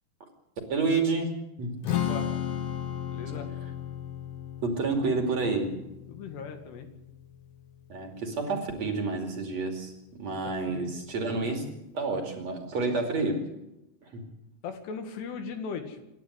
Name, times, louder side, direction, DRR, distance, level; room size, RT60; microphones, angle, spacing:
voice 1, 0.7-1.8 4.6-5.8 7.9-11.7 11.9-13.5 14.0-14.2, right 3 dB, 45° right, 3 dB, 3.5 m, -29 dB
voice 2, 1.8-2.3 3.1-3.5 6.1-6.9 10.4-10.9 14.6-16.0, left 5 dB, 75° left, 6 dB, 4.0 m, -38 dB
Strum, 1.8-8.1, left 10 dB, 60° left, 2.7 m, -35 dB
27.5 x 11.5 x 8.1 m, 0.90 s
omnidirectional pair, 4.9 m